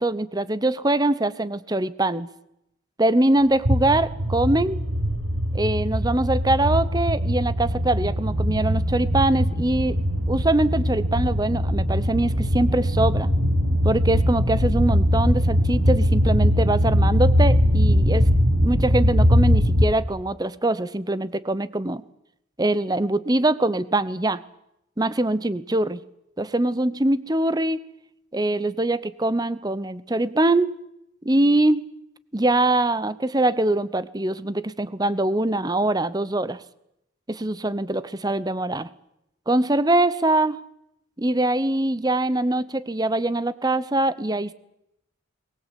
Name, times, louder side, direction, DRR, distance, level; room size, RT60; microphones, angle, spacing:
voice 1, 0.0-2.3 3.0-4.8 5.5-10.0 10.3-13.3 13.8-18.3 18.6-22.0 22.6-24.4 25.0-26.0 26.4-27.8 28.3-30.7 31.2-31.9 32.3-36.6 37.3-38.9 39.5-40.6 41.2-44.5, right 1 dB, 20° right, 16 dB, 0.8 m, -23 dB
sound 1, 3.7-19.9, equal, 80° right, 6.2 m, -21 dB
22.5 x 20.0 x 8.3 m, 0.82 s
head